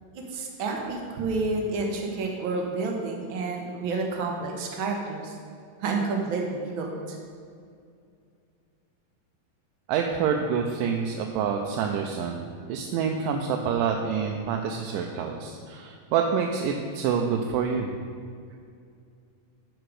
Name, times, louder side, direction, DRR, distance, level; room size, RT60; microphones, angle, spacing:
voice 1, 0.1-5.4 5.8-7.2, right 3 dB, 70° right, 0 dB, 1.2 m, -30 dB
voice 2, 9.9-17.9, right 6 dB, 90° right, 2 dB, 2.2 m, -27 dB
11.0 x 5.1 x 4.8 m, 2.4 s
omnidirectional pair, 3.7 m